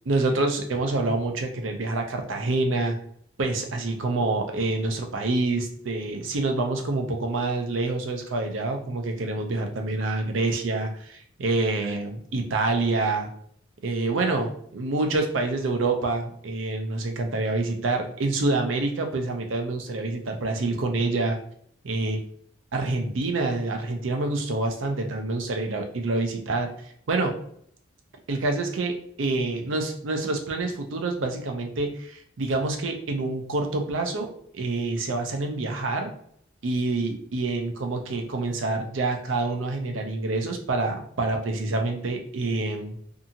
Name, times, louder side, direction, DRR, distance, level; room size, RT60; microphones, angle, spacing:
voice 1, 0.1-3.0 3.4-13.3 13.8-21.4 21.8-22.2 22.7-26.7 27.1-27.3 28.3-28.9 29.2-34.3 34.5-36.1 36.6-43.0, right 2 dB, 85° right, 4 dB, 0.6 m, -27 dB
2.7 x 2.4 x 2.7 m, 0.65 s
head